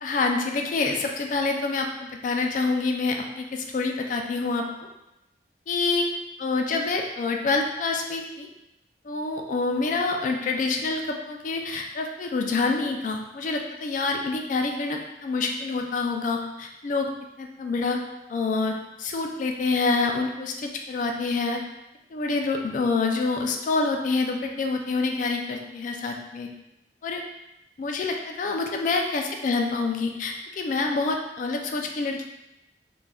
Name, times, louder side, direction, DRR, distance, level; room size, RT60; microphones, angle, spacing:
voice 1, 0.0-4.7 5.7-6.1 6.4-8.5 9.0-17.1 17.4-18.0 18.3-21.7 22.1-26.5 27.0-27.2 27.8-32.2, left 3 dB, 45° left, 2 dB, 0.3 m, -27 dB
3.3 x 2.5 x 2.2 m, 0.90 s
head